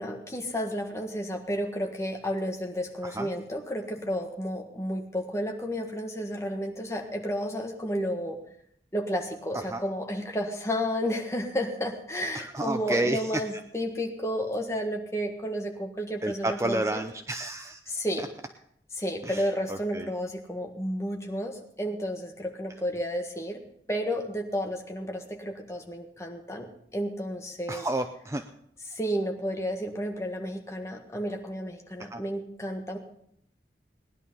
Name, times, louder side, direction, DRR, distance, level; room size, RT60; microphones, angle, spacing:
voice 1, 0.0-8.4 8.9-17.0 17.9-18.3 18.9-23.6 23.9-27.9 28.9-33.0, equal, 15° left, 2 dB, 1.6 m, -32 dB
voice 2, 12.3-13.4 16.2-18.3 19.2-20.1 27.7-28.4 32.1-32.2, right 1 dB, 15° right, 7 dB, 0.5 m, -31 dB
18.5 x 10.5 x 5.5 m, 0.68 s
head